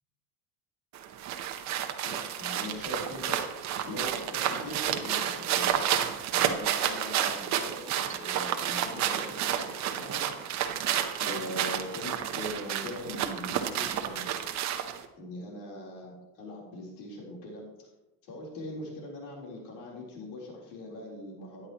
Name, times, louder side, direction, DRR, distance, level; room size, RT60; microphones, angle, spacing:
sound 1, 0.9-15.0, right 10 dB, 40° right, 0.9 m, -30 dB
voice 1, 2.0-3.4 3.9-10.3 11.2-14.3 15.2-17.9 18.2-21.7, left 1 dB, 75° left, -3 dB, 3.9 m, -41 dB
12.5 x 10.0 x 3.0 m, 0.98 s
cardioid pair, 145°, 45 cm